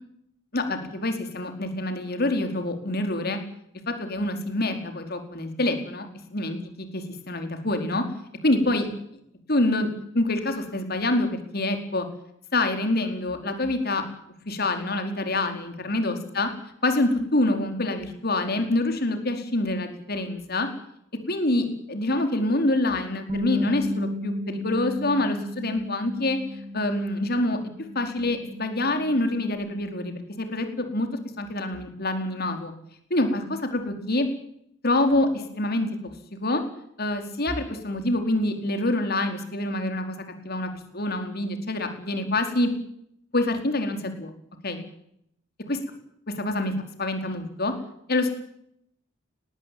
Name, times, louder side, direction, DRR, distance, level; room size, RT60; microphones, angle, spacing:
voice 1, 0.5-3.4 3.9-8.0 8.4-8.9 9.5-9.9 10.1-12.1 12.5-14.0 14.5-16.5 16.8-20.7 21.3-27.6 27.9-31.1 31.4-32.7 33.1-34.3 34.8-36.6 37.0-40.2 40.4-42.7 43.3-44.3 44.6-44.8 45.7-45.8 46.4-46.7 47.0-47.7 48.1-48.3, left 2 dB, 55° left, 6 dB, 4.6 m, -26 dB
Bass guitar, 23.3-29.5, left 1 dB, 40° right, 7.8 m, -34 dB
20.0 x 18.5 x 9.5 m, 0.72 s
head